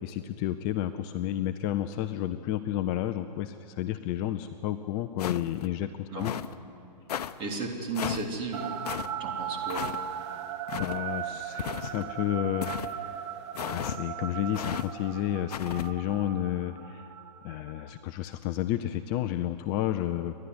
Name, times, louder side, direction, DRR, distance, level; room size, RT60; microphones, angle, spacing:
voice 1, 0.0-6.3 10.7-17.1 17.4-20.4, left 12 dB, 25° left, 9 dB, 0.5 m, -31 dB
sound 1, 5.2-5.7 6.2-6.5 7.1-7.3 8.0-8.3 8.8-9.1 9.7-10.0 10.7-11.0 11.6-12.1 12.6-12.9 13.5-14.0 14.5-14.9 15.5-15.9, left 9 dB, 65° left, 0.9 m, -34 dB
voice 2, 7.4-8.8 9.2-9.8, right 3 dB, 25° right, 0 dB, 3.6 m, -34 dB
sound 2, 8.5-18.0, right 9 dB, 40° right, 1.1 m, -38 dB
29.5 x 11.5 x 9.7 m, 2.6 s
hypercardioid pair, 140°, 21 cm